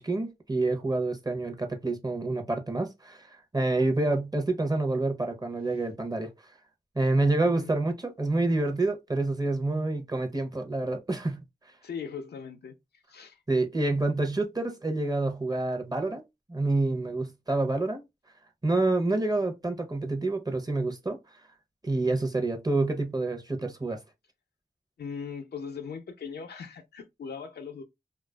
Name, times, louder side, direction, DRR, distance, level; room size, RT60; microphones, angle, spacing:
voice 1, 0.0-6.3 7.0-11.4 13.5-16.2 16.5-18.1 18.6-21.2 21.8-24.0, right 2 dB, 25° right, 0.7 m, -28 dB
voice 2, 11.8-13.4 25.0-27.8, left 6 dB, 80° left, 0.5 m, -39 dB
2.3 x 2.3 x 2.2 m
cardioid pair, 40°, 17 cm